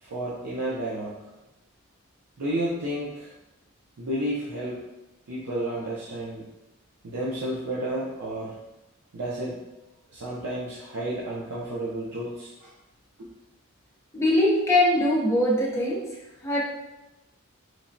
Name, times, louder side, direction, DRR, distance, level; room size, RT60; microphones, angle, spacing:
voice 1, 0.0-1.2 2.4-3.3 4.0-4.8 5.3-6.5 7.0-8.5 9.1-9.6 10.1-12.7 13.2-13.3, right 1 dB, 85° right, -6 dB, 0.5 m, -31 dB
voice 2, 14.1-16.0 16.4-16.6, left 1 dB, 10° left, -4 dB, 0.4 m, -22 dB
3.2 x 2.1 x 2.5 m, 0.99 s
head